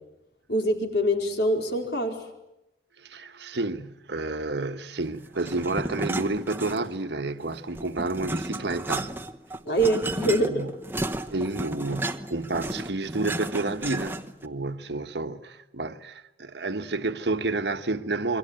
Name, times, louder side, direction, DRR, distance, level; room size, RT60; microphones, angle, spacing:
voice 1, 0.5-2.2 9.7-10.5, right 1 dB, 65° left, 4.7 m, -24 dB
voice 2, 3.0-9.2 10.2-10.8 11.3-18.4, right 2 dB, 75° right, 1.3 m, -30 dB
sound 1, 5.4-7.1 7.4-14.5, right 1 dB, 10° right, 1.0 m, -33 dB
28.0 x 23.5 x 8.9 m
head